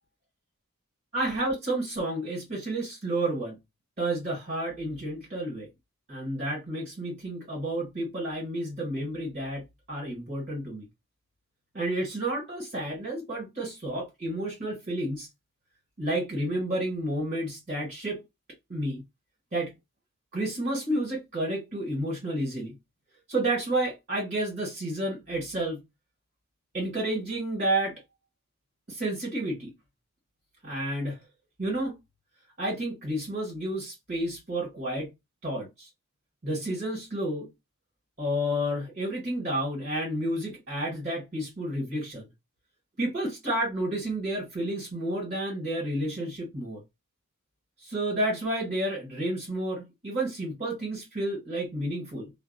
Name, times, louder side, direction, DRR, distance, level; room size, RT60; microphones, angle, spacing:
voice 1, 1.1-3.6 4.0-5.7 6.1-10.8 11.7-15.3 16.0-18.2 18.7-19.0 19.5-19.7 20.3-22.7 23.3-25.8 26.7-28.0 28.9-29.7 30.6-31.2 31.6-32.0 32.6-35.1 35.4-35.9 36.4-37.5 38.2-42.3 43.0-46.8 47.8-52.3, right 1 dB, 40° right, 1.4 m, -30 dB
2.5 x 2.0 x 2.5 m
head